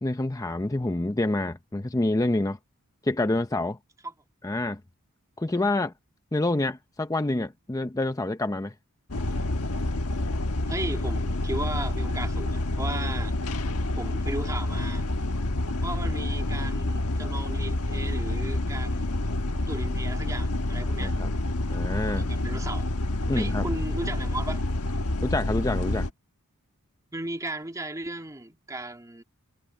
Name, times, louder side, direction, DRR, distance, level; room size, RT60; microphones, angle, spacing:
voice 1, 0.0-2.6 3.0-3.8 4.4-4.8 5.4-5.9 6.3-8.7 21.0-21.3 21.7-22.3 23.3-23.6 25.2-26.1, left 2 dB, 15° left, 0.6 m, -27 dB
sound 1, 9.1-26.1, left 2 dB, 80° left, 1.3 m, -28 dB
voice 2, 10.7-13.3 14.0-15.1 15.8-19.1 19.7-21.1 22.2-22.9 23.3-24.6 27.1-29.2, right 2 dB, 15° right, 2.5 m, -35 dB
head